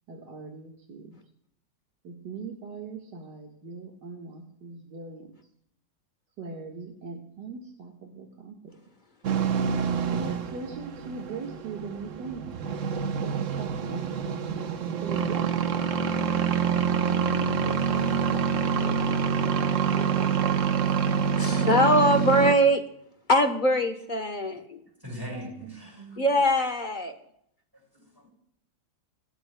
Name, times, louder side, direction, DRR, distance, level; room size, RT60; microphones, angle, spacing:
voice 1, 0.1-1.2 2.0-5.3 6.4-8.6 10.1-12.4 13.2-14.2 15.0-16.0 16.5-20.4 21.4-21.9 25.3-26.3, right 4 dB, 85° right, -1 dB, 2.2 m, -40 dB
sound 1, 9.2-22.5, right 6 dB, 55° right, 1.0 m, -26 dB
voice 2, 21.4-22.8 23.3-24.8 26.2-27.2, equal, 35° left, 6 dB, 1.0 m, -22 dB
voice 3, 24.8-26.2 27.9-28.3, equal, 15° right, -1 dB, 5.1 m, -41 dB
26.5 x 12.0 x 2.3 m, 0.70 s
omnidirectional pair, 1.8 m